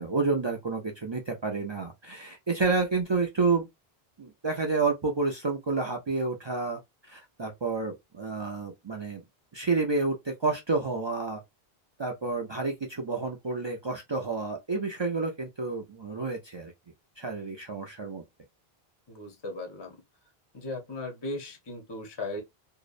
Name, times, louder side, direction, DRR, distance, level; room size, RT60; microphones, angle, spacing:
voice 1, 0.0-3.7 4.2-9.2 9.5-11.4 12.0-16.7 17.2-18.2, right 4 dB, 50° right, 0.3 m, -29 dB
voice 2, 19.1-20.0 20.5-22.4, left 2 dB, 30° left, 0.6 m, -37 dB
2.7 x 2.0 x 2.4 m
omnidirectional pair, 1.1 m